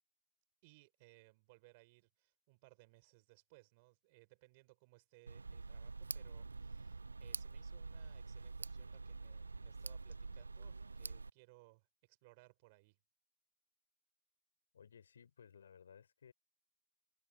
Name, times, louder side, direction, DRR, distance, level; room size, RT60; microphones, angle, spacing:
voice 1, 0.6-13.0, right 25 dB, 15° right, 5.9 m, -65 dB
Tick, 5.3-11.3, right 3 dB, 60° right, 0.7 m, -46 dB
voice 2, 14.7-16.3, left 7 dB, 35° left, 3.8 m, -60 dB
figure-of-eight pair, 165°, 0 cm